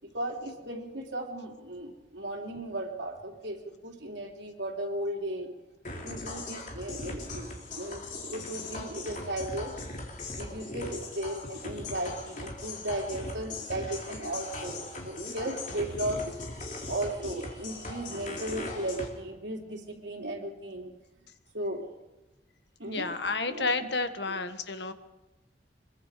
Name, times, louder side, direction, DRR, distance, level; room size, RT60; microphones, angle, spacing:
voice 1, 0.0-5.5 6.0-9.8 10.4-16.4 16.9-20.9 21.5-21.9 22.8-23.1 23.5-23.7 24.3-24.4, right 1 dB, 85° right, 0 dB, 3.5 m, -36 dB
sound 1, 5.9-19.1, left 2 dB, 45° left, 3.3 m, -39 dB
voice 2, 22.9-24.9, left 3 dB, 80° left, 9 dB, 1.5 m, -31 dB
24.5 x 22.5 x 5.1 m, 1.1 s
head